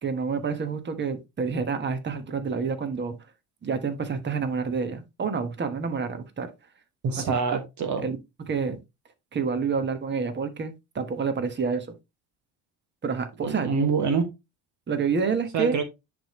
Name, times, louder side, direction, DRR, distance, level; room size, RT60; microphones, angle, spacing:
voice 1, 0.0-3.2 3.6-6.5 7.1-7.6 8.0-8.2 8.5-8.8 9.3-11.9 13.0-13.7 14.9-15.8, right 5 dB, 30° right, 1.3 m, -28 dB
voice 2, 7.0-8.0 13.4-14.3 15.5-15.8, right 5 dB, 50° right, 1.3 m, -25 dB
9.9 x 3.5 x 3.1 m
supercardioid pair, 90°, 37 cm